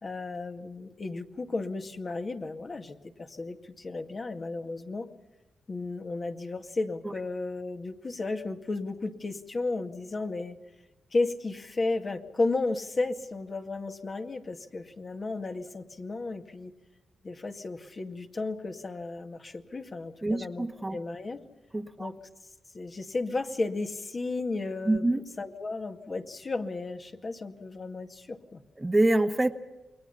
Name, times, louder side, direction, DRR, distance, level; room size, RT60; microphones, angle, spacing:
voice 1, 0.0-5.1 5.7-10.6 11.1-16.7 17.2-21.4 22.0-22.1 22.7-25.1 25.4-28.6, left 3 dB, 40° left, 5 dB, 2.1 m, -33 dB
voice 2, 20.2-21.0 21.7-22.1 24.9-25.2 28.8-29.5, right 2 dB, 20° right, 7 dB, 1.4 m, -25 dB
28.5 x 22.0 x 5.7 m, 1.1 s
cardioid pair, 75°, 0 cm